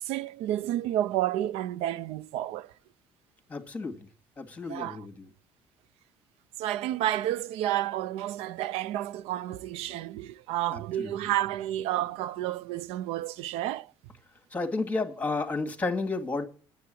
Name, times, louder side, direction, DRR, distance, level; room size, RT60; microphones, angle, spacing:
voice 1, 0.0-2.7 4.6-5.1 6.6-13.9, right 13 dB, 90° right, 0.5 m, -30 dB
voice 2, 3.5-4.0 4.4-5.3 10.7-11.1 14.5-16.4, left 3 dB, 15° left, 2.1 m, -32 dB
9.5 x 7.9 x 7.8 m
cardioid pair, 120°, 10 cm